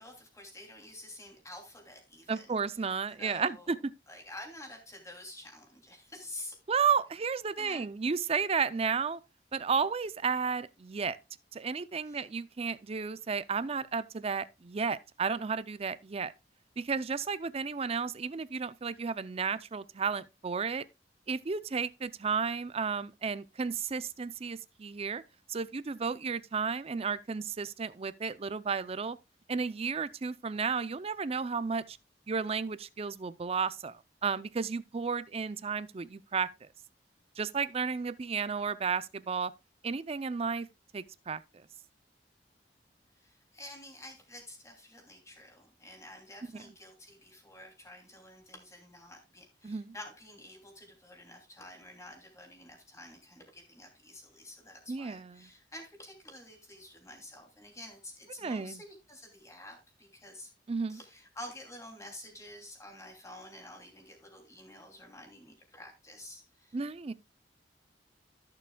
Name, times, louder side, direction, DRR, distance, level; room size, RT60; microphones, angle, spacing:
voice 1, 0.0-2.9 3.2-3.7 4.1-6.6 7.6-7.9 12.0-12.3 43.2-60.5 60.9-66.8, left 1 dB, 20° left, 2.9 m, -49 dB
voice 2, 2.3-3.8 6.7-9.2 9.5-11.2 11.5-16.3 16.8-20.8 21.3-25.2 25.5-29.2 29.5-32.0 32.3-34.0 34.2-36.5 37.4-39.5 39.8-40.7 40.9-41.4 46.5-46.6 49.6-49.9 54.9-55.5 58.4-58.8 60.7-61.0 66.7-67.1, right 5 dB, 35° right, 0.5 m, -33 dB
14.5 x 6.8 x 2.3 m
head